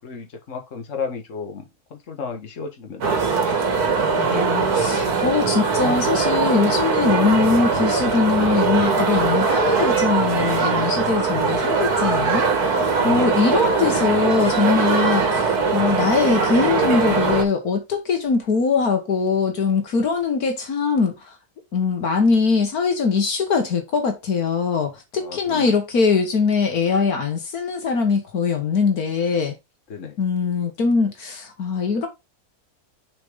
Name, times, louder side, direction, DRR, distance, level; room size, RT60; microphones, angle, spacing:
voice 1, 0.0-3.4 12.9-13.4 25.2-25.7 29.9-30.2, left 5 dB, 55° left, 1.8 m, -33 dB
sound 1, 3.0-17.4, right 4 dB, 85° right, 2.1 m, -21 dB
voice 2, 4.1-12.5 12.7-21.1 21.7-29.6 30.2-32.1, left 5 dB, 75° left, 1.9 m, -22 dB
6.4 x 5.1 x 3.7 m
omnidirectional pair, 1.6 m